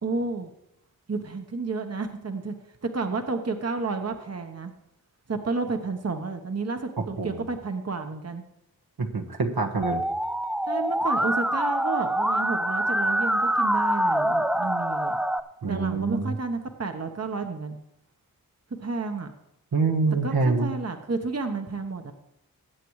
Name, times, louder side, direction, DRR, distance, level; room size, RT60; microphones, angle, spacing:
voice 1, 0.0-0.5 1.1-2.5 2.8-4.7 5.3-8.4 10.7-15.2 15.7-17.8 18.8-19.3 20.2-22.1, right 3 dB, 40° right, 6 dB, 1.1 m, -31 dB
voice 2, 9.0-10.0 15.6-16.3 19.7-20.7, right 3 dB, 75° right, 1 dB, 1.4 m, -25 dB
Musical instrument, 9.8-15.4, right 1 dB, ahead, 0.5 m, -25 dB
20.5 x 8.4 x 3.2 m, 0.83 s
wide cardioid pair, 55°, 37 cm